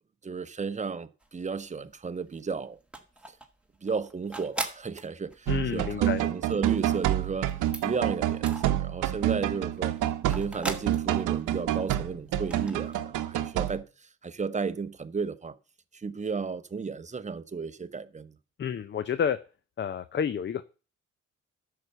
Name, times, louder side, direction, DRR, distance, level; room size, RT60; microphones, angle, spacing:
voice 1, 0.2-2.8 3.8-7.5 7.8-9.9 10.3-13.8 14.2-15.5 15.9-18.4, right 5 dB, 25° right, 0.9 m, -33 dB
sound 1, 1.2-1.9 2.2-9.3 9.6-12.0 12.3-13.0, right 2 dB, 5° right, 1.9 m, -40 dB
voice 2, 5.5-6.2 18.6-19.4 19.8-20.6, left 7 dB, 40° left, 0.6 m, -29 dB
sound 2, 5.5-13.8, right 12 dB, 80° right, 0.9 m, -28 dB
10.5 x 6.7 x 6.8 m
cardioid pair, 90°, 30 cm